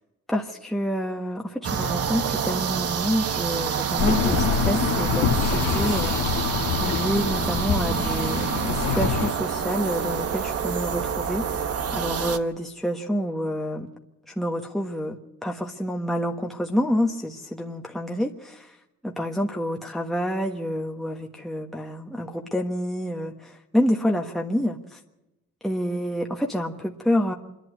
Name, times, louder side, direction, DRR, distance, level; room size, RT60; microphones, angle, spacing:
voice 1, 0.3-6.4 6.8-11.4 11.9-13.9 14.4-18.7 19.0-25.0 25.6-27.3, equal, ahead, 0 dB, 1.4 m, -28 dB
sound 1, 1.6-12.4, right 7 dB, 50° right, 1.2 m, -27 dB
sound 2, 4.0-9.3, left 7 dB, 85° left, 1.5 m, -25 dB
25.5 x 11.0 x 9.3 m, 0.98 s
cardioid pair, 90°, 30 cm